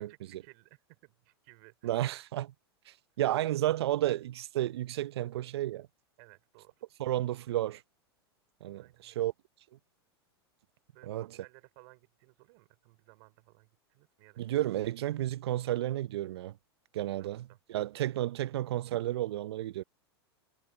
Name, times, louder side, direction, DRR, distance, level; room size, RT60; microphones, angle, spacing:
voice 1, 0.0-1.9 6.2-6.7 8.8-9.2 10.9-14.5 17.2-17.6, right 33 dB, 55° right, 5.0 m, -59 dB
voice 2, 1.8-2.5 2.9-5.9 7.0-7.8 8.6-9.3 11.0-11.3 14.4-16.5 16.9-19.8, right 14 dB, 70° right, 0.6 m, -32 dB
hypercardioid pair, 105°, 14 cm